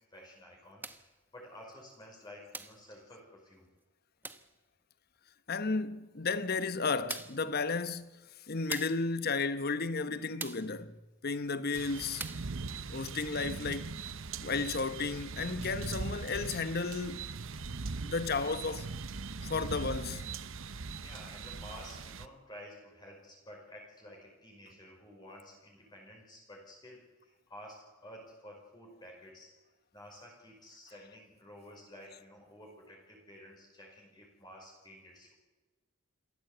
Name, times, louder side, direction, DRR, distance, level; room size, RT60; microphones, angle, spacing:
voice 1, 0.0-3.7 20.6-29.5 29.9-35.3, left 1 dB, 20° left, 5.1 m, -52 dB
sound 1, 0.8-1.1 2.5-2.8 4.2-4.5 6.3-6.4 7.1-7.5 8.7-9.1 10.4-10.7 12.2-12.5, right 3 dB, 10° right, 0.9 m, -42 dB
voice 2, 5.5-8.1 8.5-11.0 11.2-12.3 12.9-14.0 14.4-17.3 18.0-18.9 19.5-20.3, left 4 dB, 50° left, 1.0 m, -33 dB
sound 2, 11.7-22.3, right 4 dB, 70° right, 0.9 m, -40 dB
27.0 x 14.0 x 8.0 m
head